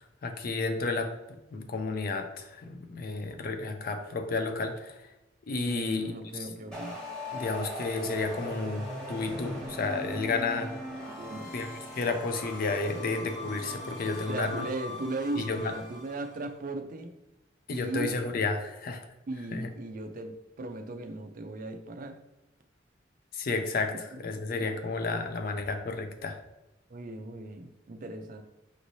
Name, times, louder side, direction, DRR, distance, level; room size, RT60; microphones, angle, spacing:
voice 1, 0.2-1.1 1.5-5.0 5.5-6.0 7.3-10.7 11.5-11.7 12.0-14.6 15.4-15.6 17.7-19.0 19.5-19.7 23.3-23.9 24.2-26.4, left 3 dB, 50° left, 6 dB, 0.4 m, -31 dB
voice 2, 5.7-7.0 11.1-11.5 14.3-17.1 17.7-18.2 19.3-22.2 23.9-24.2 26.9-28.4, right 2 dB, 45° right, 7 dB, 0.4 m, -37 dB
sound 1, 6.7-16.4, left 1 dB, 5° left, 1.1 m, -40 dB
5.1 x 3.1 x 2.7 m, 0.94 s
head